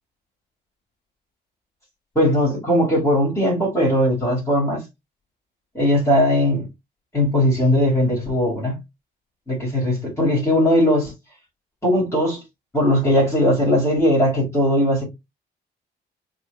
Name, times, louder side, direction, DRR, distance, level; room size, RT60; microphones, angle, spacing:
voice 1, 2.1-4.8 5.7-6.7 7.1-8.8 9.5-11.1 11.8-12.4 12.7-15.0, equal, 15° left, 2.5 m, -19 dB
5.8 x 2.5 x 2.4 m
cardioid pair, 90°, 20 cm